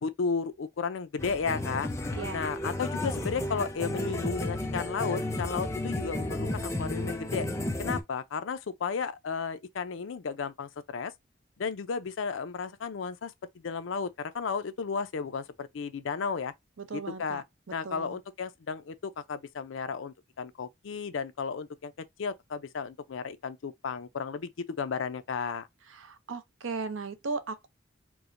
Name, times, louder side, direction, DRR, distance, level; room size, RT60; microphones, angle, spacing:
voice 1, 0.0-1.9 2.3-7.5 7.8-11.1 11.6-16.5 16.9-17.4 17.7-25.7, left 5 dB, 80° left, 0.5 m, -34 dB
sound 1, 1.2-8.0, left 1 dB, 15° left, 0.5 m, -33 dB
voice 2, 16.8-17.4 17.8-18.2 25.9-27.7, right 4 dB, 85° right, 0.6 m, -36 dB
4.6 x 2.1 x 2.5 m
head